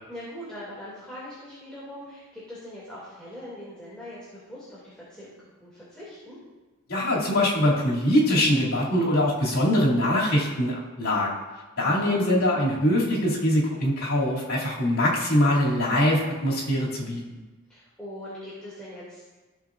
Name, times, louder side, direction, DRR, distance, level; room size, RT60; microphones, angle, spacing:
voice 1, 0.1-6.4 11.8-12.2 17.7-19.2, left 1 dB, 5° left, -9 dB, 2.5 m, -41 dB
voice 2, 6.9-11.4 11.8-17.2, left 1 dB, 75° left, -6 dB, 2.7 m, -23 dB
15.5 x 6.6 x 2.5 m, 1.2 s
head